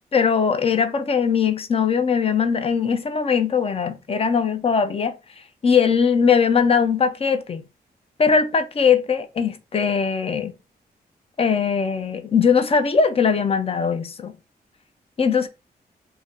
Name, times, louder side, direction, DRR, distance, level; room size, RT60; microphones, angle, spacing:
voice 1, 0.1-5.1 5.6-7.6 8.2-10.5 11.4-14.3 15.2-15.5, left 6 dB, 35° left, 0.5 m, -20 dB
2.6 x 2.2 x 3.5 m
cardioid pair, 100°, 16 cm